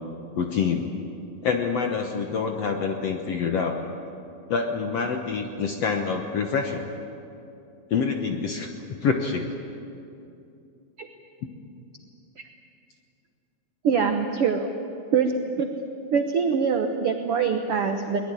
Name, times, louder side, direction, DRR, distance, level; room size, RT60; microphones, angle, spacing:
voice 1, 0.4-0.9 1.4-3.8 4.5-6.9 7.9-8.7 9.0-9.5, left 5 dB, 65° left, 4 dB, 1.7 m, -26 dB
voice 2, 13.8-14.7 15.1-15.7 16.1-18.2, right 6 dB, 80° right, 5 dB, 1.2 m, -24 dB
22.5 x 21.0 x 9.9 m, 2.7 s
omnidirectional pair, 4.4 m